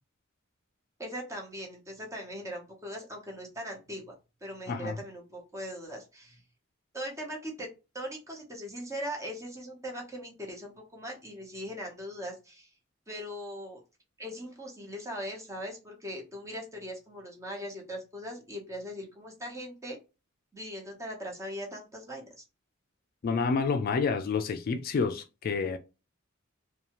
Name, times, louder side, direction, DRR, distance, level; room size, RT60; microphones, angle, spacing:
voice 1, 1.0-4.1 4.4-6.4 6.9-7.7 7.9-12.7 13.1-13.8 14.2-20.0 20.5-22.4, equal, 15° right, 0.8 m, -40 dB
voice 2, 4.7-5.0 23.2-25.8, left 5 dB, 45° left, 0.3 m, -29 dB
2.7 x 2.3 x 2.9 m
head